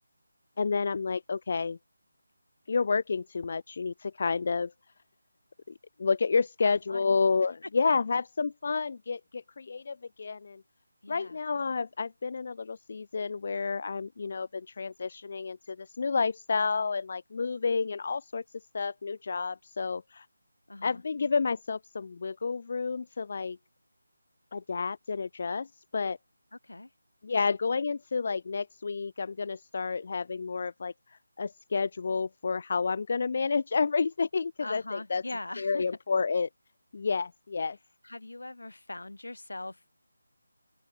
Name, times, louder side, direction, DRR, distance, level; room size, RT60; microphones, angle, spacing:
voice 1, 0.6-1.8 2.7-4.7 5.7-10.6 11.1-18.4 18.7-20.3 20.8-23.6 24.5-26.2 27.2-35.2 35.6-36.5 36.9-37.8, left 4 dB, 40° left, 0.7 m, -30 dB
voice 2, 6.6-7.2 7.6-7.7 11.0-11.4 20.7-21.0 26.5-26.9 34.6-35.8 38.0-39.9, left 2 dB, 65° left, 2.4 m, -41 dB
open air
figure-of-eight pair, 160°, 0 cm